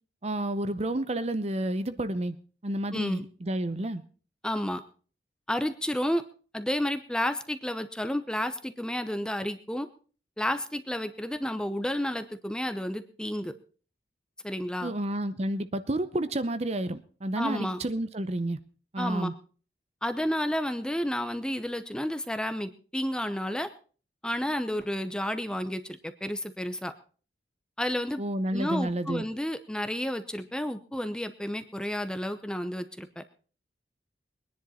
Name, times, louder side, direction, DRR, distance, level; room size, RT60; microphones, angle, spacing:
voice 1, 0.2-2.4 2.6-4.0 14.8-18.6 18.9-19.3 28.2-29.3, right 1 dB, 35° right, 12 dB, 0.8 m, -30 dB
voice 2, 2.9-3.2 4.4-4.8 5.5-6.2 6.5-9.9 10.4-13.5 14.4-14.9 17.4-17.8 19.0-19.3 20.0-23.7 24.2-26.9 27.8-28.2 28.5-33.2, equal, 5° left, 9 dB, 0.8 m, -31 dB
22.0 x 10.5 x 4.3 m, 0.40 s
head